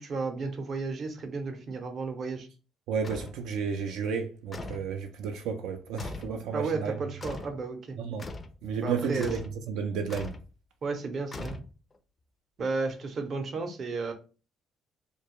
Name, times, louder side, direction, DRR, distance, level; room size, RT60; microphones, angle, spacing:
voice 1, 0.0-2.5 6.5-8.0 8.8-9.3 10.8-11.6 12.6-14.1, right 4 dB, 45° right, 0.6 m, -33 dB
voice 2, 2.9-6.9 8.0-8.3 8.6-9.4 9.7-10.4, right 6 dB, 85° right, 0.3 m, -32 dB
sound 1, 3.0-3.4 4.5-4.9 6.0-6.4 7.2-7.6 8.2-8.5 9.2-9.6 10.1-10.5 11.3-12.0, left 2 dB, 25° left, 0.3 m, -39 dB
2.2 x 2.0 x 2.9 m
cardioid pair, 115°, 0 cm